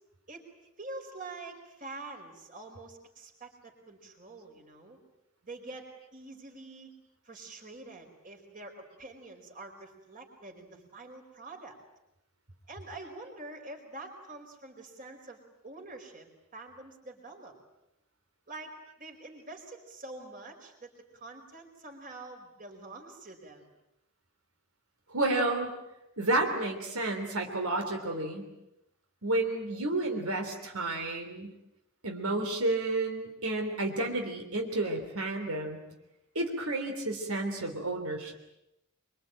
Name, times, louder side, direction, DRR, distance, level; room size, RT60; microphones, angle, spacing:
voice 1, 0.8-5.0 5.4-6.9 7.2-11.8 12.7-16.3 16.5-17.5 18.5-23.6, right 2 dB, 40° right, 3 dB, 4.8 m, -46 dB
voice 2, 25.1-25.7 26.2-28.4 29.2-31.5 32.0-35.8 36.3-38.3, right 2 dB, 80° right, 3 dB, 3.4 m, -31 dB
24.5 x 24.5 x 9.0 m, 0.89 s
head